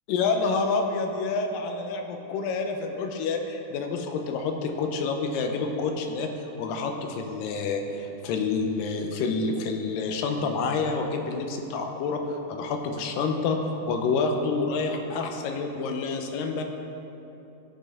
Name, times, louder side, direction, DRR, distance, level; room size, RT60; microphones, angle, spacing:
voice 1, 0.1-6.3 6.6-16.6, left 4 dB, 85° left, 4 dB, 2.4 m, -28 dB
13.0 x 5.4 x 3.5 m, 2.9 s
omnidirectional pair, 3.9 m